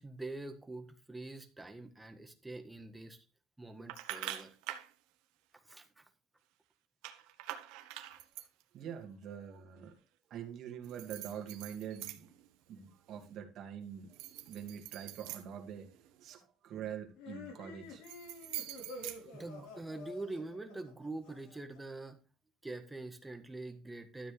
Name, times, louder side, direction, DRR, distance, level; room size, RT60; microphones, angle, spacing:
voice 1, 0.0-3.2 3.6-4.6 5.6-6.0 19.2-22.2 22.6-24.3, right 2 dB, 10° right, 6 dB, 1.5 m, -45 dB
sound 1, 3.9-4.9 7.0-8.6 10.8-12.5 12.8-13.3 14.0-16.3 17.9-19.9, right 14 dB, 90° right, 1.3 m, -45 dB
voice 2, 8.7-10.0 10.3-12.3 12.7-14.2 14.4-18.0, right 8 dB, 50° right, 3 dB, 2.5 m, -45 dB
sound 2, 17.2-21.8, left 2 dB, 85° left, 4.5 m, -49 dB
13.0 x 7.4 x 3.5 m, 0.31 s
cardioid pair, 140°, 0 cm